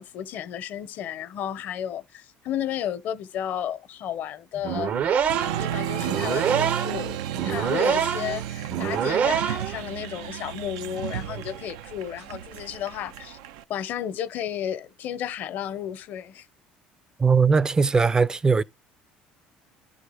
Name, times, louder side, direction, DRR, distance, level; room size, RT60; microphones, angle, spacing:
voice 1, 0.0-4.9 5.6-13.4 13.7-16.5, left 10 dB, 65° left, 0.7 m, -33 dB
sound 1, 4.6-9.8, right 8 dB, 55° right, 0.7 m, -26 dB
Applause, 5.2-13.6, right 11 dB, 90° right, 0.4 m, -33 dB
voice 2, 17.2-18.6, right 5 dB, 20° right, 0.4 m, -19 dB
11.0 x 3.8 x 4.9 m
supercardioid pair, 85°, 3 cm